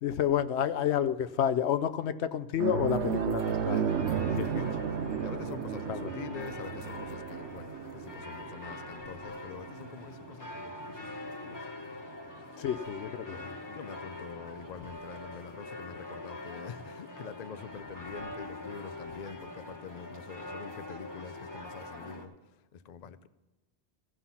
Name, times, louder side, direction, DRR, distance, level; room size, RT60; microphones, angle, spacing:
voice 1, 0.0-3.8 4.4-4.7 5.9-6.1 12.6-13.4, left 9 dB, 75° left, 13 dB, 0.9 m, -30 dB
sound 1, 2.6-11.5 11.9-12.1 14.1-14.2, right 8 dB, 75° right, 0.9 m, -34 dB
sound 2, 2.9-22.3, left 2 dB, 15° left, 1.2 m, -44 dB
voice 2, 3.6-11.7 13.3-23.3, left 7 dB, 50° left, 13 dB, 0.5 m, -46 dB
15.0 x 5.7 x 5.7 m, 1.1 s
omnidirectional pair, 1.2 m